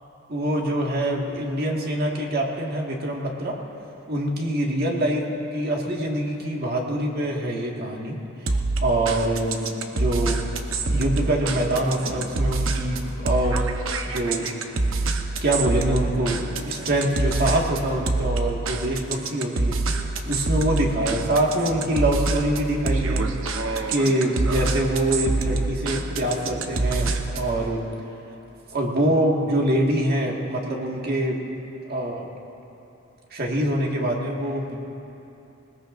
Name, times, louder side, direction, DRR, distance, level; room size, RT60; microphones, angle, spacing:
voice 1, 0.3-3.6 4.1-8.2 8.8-9.7 10.0-10.4 10.9-13.6 14.1-14.5 15.4-19.8 20.3-23.3 23.9-27.8 28.7-31.4 31.8-32.3 33.3-34.8, right 1 dB, 50° right, -1 dB, 1.8 m, -24 dB
sound 1, 8.5-27.5, right 3 dB, 85° right, 0.9 m, -26 dB
20.5 x 20.0 x 2.6 m, 2.9 s
head